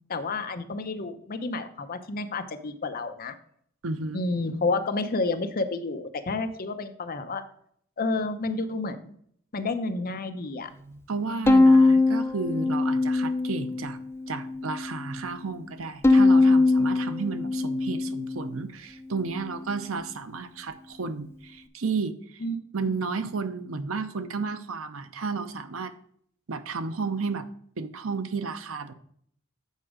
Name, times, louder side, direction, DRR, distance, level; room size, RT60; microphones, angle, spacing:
voice 1, 0.0-3.4 4.1-7.4 8.0-9.2 9.5-10.7 22.4-22.6 22.8-23.0, left 3 dB, 45° left, 8 dB, 0.7 m, -30 dB
voice 2, 3.8-4.2 10.7-14.0 14.3-22.4 22.7-25.9 26.5-27.5 27.8-28.9, right 4 dB, 70° right, 11 dB, 0.7 m, -32 dB
Bowed string instrument, 11.5-13.8 14.3-15.1 16.0-18.6, left 3 dB, 10° left, 0.5 m, -21 dB
8.2 x 4.9 x 4.9 m, 0.65 s
head